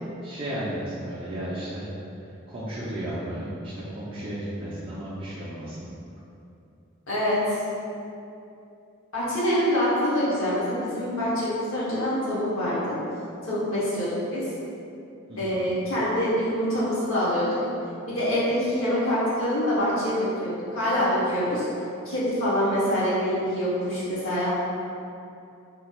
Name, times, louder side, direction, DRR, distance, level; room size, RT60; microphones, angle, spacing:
voice 1, 0.2-1.9 2.5-5.9 15.3-15.7, right 1 dB, 25° right, -10 dB, 0.4 m, -34 dB
voice 2, 7.1-7.4 9.1-13.0 13.4-14.4 15.4-17.6 18.1-21.7 22.0-24.6, equal, 75° left, -9 dB, 1.1 m, -25 dB
3.1 x 2.9 x 2.4 m, 2.7 s
head